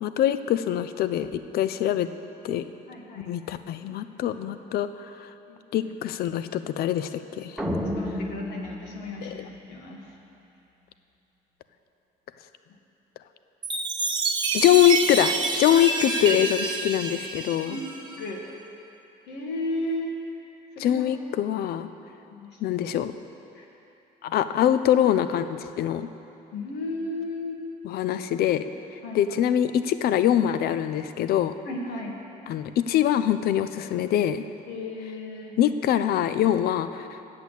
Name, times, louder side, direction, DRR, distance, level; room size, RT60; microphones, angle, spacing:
voice 1, 0.0-2.1 2.4-2.6 3.3-5.3 5.7-7.6 9.2-9.4 14.5-17.8 20.8-21.9 22.6-23.1 24.2-26.1 27.8-28.6 29.1-31.5 32.5-34.4 35.6-37.2, left 11 dB, 65° left, 12 dB, 0.5 m, -24 dB
voice 2, 2.9-3.3 5.5-5.6 8.0-10.0 14.5-14.7 17.6-17.9 18.2-18.5 19.3-20.1 20.8-21.0 22.3-22.8 23.6-23.7 26.5-27.6 29.0-29.2 31.7-32.2 34.7-35.5, left 2 dB, 80° left, -1 dB, 1.6 m, -34 dB
sound 1, 7.6-10.0, left 1 dB, 5° right, 0.9 m, -32 dB
Chime, 13.6-18.2, right 3 dB, 25° right, 1.0 m, -28 dB
8.2 x 6.9 x 8.1 m, 2.8 s
cardioid pair, 110°, 17 cm